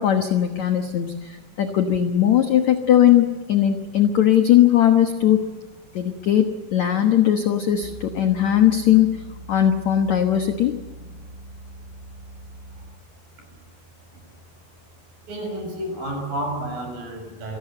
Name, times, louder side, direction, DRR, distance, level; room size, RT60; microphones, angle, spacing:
voice 1, 0.0-5.4 5.9-6.5 6.7-9.1 9.5-10.8, left 11 dB, 70° left, 6 dB, 1.7 m, -19 dB
sound 1, 7.8-13.1, right 1 dB, 15° right, 3.7 m, -42 dB
voice 2, 15.3-17.6, right 1 dB, 50° right, 3 dB, 8.3 m, -30 dB
27.0 x 18.5 x 7.9 m, 1.3 s
omnidirectional pair, 5.2 m